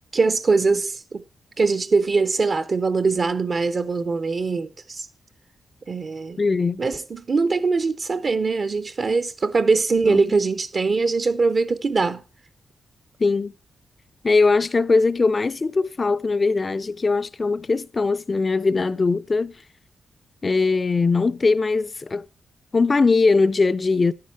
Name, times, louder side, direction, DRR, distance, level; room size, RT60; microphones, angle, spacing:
voice 1, 0.1-1.2 1.6-5.1 5.9-6.4 6.8-12.2, right 4 dB, 50° right, 0.7 m, -22 dB
voice 2, 6.4-6.9 10.1-10.2 13.2-13.5 14.2-19.5 20.4-22.3 22.7-24.1, left 4 dB, 35° left, 0.4 m, -20 dB
10.0 x 9.6 x 4.6 m
cardioid pair, 85°, 0 cm